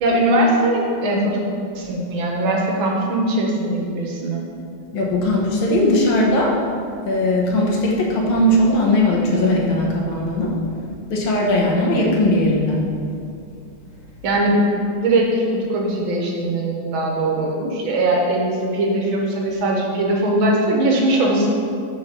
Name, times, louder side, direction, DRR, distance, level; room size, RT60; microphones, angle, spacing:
voice 1, 0.0-1.4 1.8-4.4 14.2-14.6 15.0-21.5, right 1 dB, 80° right, -1 dB, 1.8 m, -20 dB
voice 2, 4.9-13.1, left 1 dB, 85° left, -2 dB, 1.9 m, -19 dB
5.5 x 4.1 x 5.8 m, 2.4 s
omnidirectional pair, 2.2 m